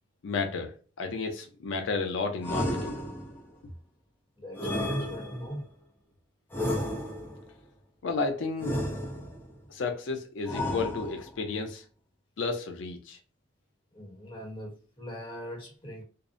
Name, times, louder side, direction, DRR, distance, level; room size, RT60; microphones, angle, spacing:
voice 1, 0.2-3.0 8.0-8.8 9.7-11.8 12.4-13.2, left 4 dB, 90° left, 0.5 m, -32 dB
sound 1, 2.4-3.5 4.6-5.6 6.5-7.5 8.6-9.5 10.5-11.4, left 1 dB, 10° left, 0.5 m, -32 dB
voice 2, 4.4-5.6 13.9-16.0, equal, 25° left, 1.0 m, -39 dB
2.6 x 2.0 x 2.5 m
head